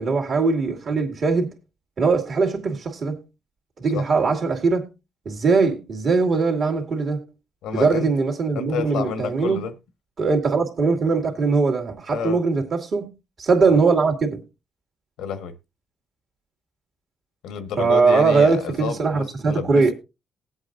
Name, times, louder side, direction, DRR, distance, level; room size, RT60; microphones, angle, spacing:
voice 1, 0.0-1.5 2.0-3.2 3.8-4.9 5.2-7.2 7.7-9.6 10.2-13.1 13.4-14.4 17.8-19.9, right 4 dB, 55° right, 2.4 m, -21 dB
voice 2, 7.6-8.1 8.5-9.7 12.1-12.4 13.6-13.8 15.2-15.5 17.4-19.9, left 6 dB, 90° left, 1.3 m, -29 dB
20.0 x 8.0 x 2.6 m
cardioid pair, 90°, 0 cm